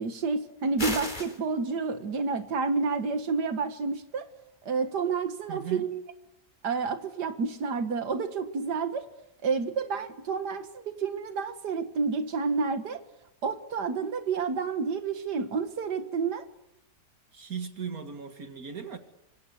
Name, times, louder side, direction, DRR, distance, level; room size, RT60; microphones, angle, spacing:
voice 1, 0.0-4.3 4.6-6.0 6.6-9.1 9.4-13.0 13.4-16.5, right 4 dB, 80° right, 9 dB, 2.2 m, -29 dB
sound 1, 0.8-1.4, left 1 dB, 25° left, 3.5 m, -32 dB
voice 2, 5.5-5.9 17.3-19.0, right 6 dB, 60° right, 7 dB, 2.2 m, -37 dB
26.0 x 25.5 x 8.3 m, 0.83 s
omnidirectional pair, 1.8 m